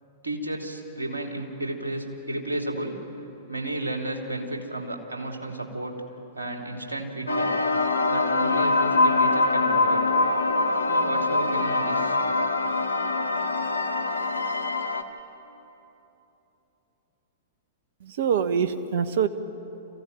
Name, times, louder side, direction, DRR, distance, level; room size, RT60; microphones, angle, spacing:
voice 1, 0.2-3.0 3.5-5.9 6.3-7.5 8.1-10.0 10.9-12.2, right 1 dB, 80° right, 2 dB, 3.0 m, -32 dB
sound 1, 7.3-15.0, left 2 dB, 90° left, 1.3 m, -24 dB
voice 2, 18.0-19.3, right 7 dB, 60° right, 10 dB, 1.3 m, -24 dB
26.5 x 16.0 x 9.4 m, 2.9 s
figure-of-eight pair, 105°, 0 cm